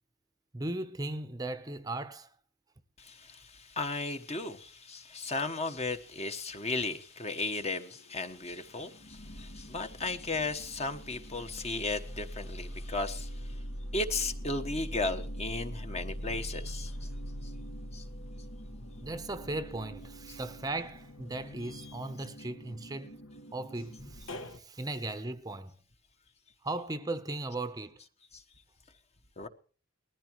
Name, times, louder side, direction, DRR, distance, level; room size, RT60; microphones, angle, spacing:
voice 1, 0.5-2.3 19.0-23.1 23.5-25.8 26.6-28.0, right 2 dB, 15° right, 0.7 m, -37 dB
voice 2, 3.0-13.5 13.9-17.1 17.4-17.5 17.9-18.0 20.3-20.4 28.3-28.4 29.4-29.5, left 3 dB, 30° left, 1.1 m, -35 dB
sound 1, 7.6-8.3 8.7-24.6, equal, 65° left, 1.5 m, -43 dB
20.0 x 14.5 x 3.0 m
head